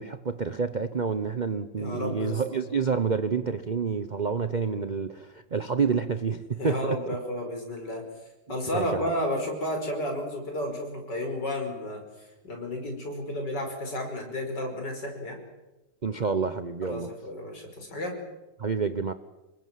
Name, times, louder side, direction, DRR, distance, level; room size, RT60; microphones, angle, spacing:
voice 1, 0.0-7.1 8.7-9.1 16.0-17.1 18.6-19.1, right 5 dB, 40° right, 11 dB, 0.6 m, -28 dB
voice 2, 1.8-2.7 6.6-8.0 8.5-12.0 12.4-15.4 16.8-18.2, left 1 dB, 65° left, 3 dB, 5.9 m, -32 dB
27.0 x 22.5 x 7.6 m, 1.0 s
omnidirectional pair, 2.0 m